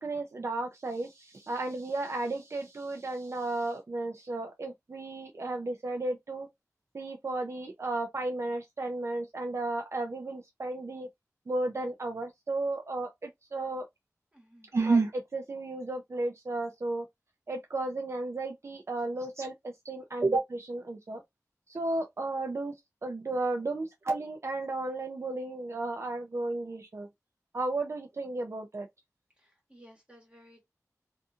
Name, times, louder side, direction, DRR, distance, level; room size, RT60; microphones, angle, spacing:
voice 1, 0.0-6.5 6.9-11.1 11.5-13.9 14.7-17.1 17.5-21.2 21.7-22.7 23.0-27.1 27.5-28.9, right 2 dB, 50° right, 0.4 m, -33 dB
voice 2, 14.3-14.7 29.4-30.6, equal, 20° right, 1.4 m, -57 dB
2.6 x 2.5 x 2.4 m
wide cardioid pair, 65°, 6 cm